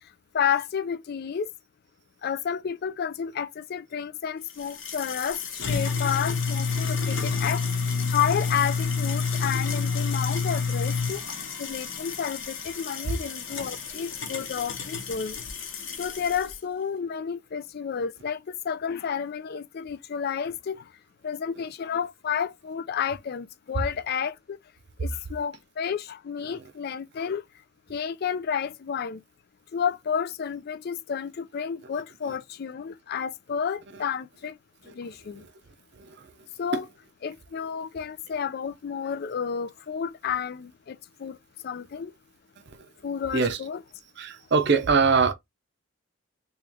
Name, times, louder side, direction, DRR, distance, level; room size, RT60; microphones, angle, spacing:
voice 1, 0.3-1.5 2.2-7.6 8.1-11.2 11.6-15.4 16.0-20.9 21.2-24.6 25.0-27.4 27.9-29.2 29.7-34.6 34.9-35.4 36.6-36.9 37.2-41.4 41.6-42.1 43.0-43.8, left 7 dB, 45° left, 0.3 m, -31 dB
sound 1, 4.5-16.5, left 5 dB, 65° left, 0.9 m, -29 dB
voice 2, 6.8-7.2 26.5-26.6 33.9-34.0 34.9-35.5 36.0-36.3 36.7-36.8 42.7-42.9 43.3-43.6 44.2-45.3, right 5 dB, 55° right, 0.6 m, -25 dB
3.1 x 3.0 x 3.4 m
head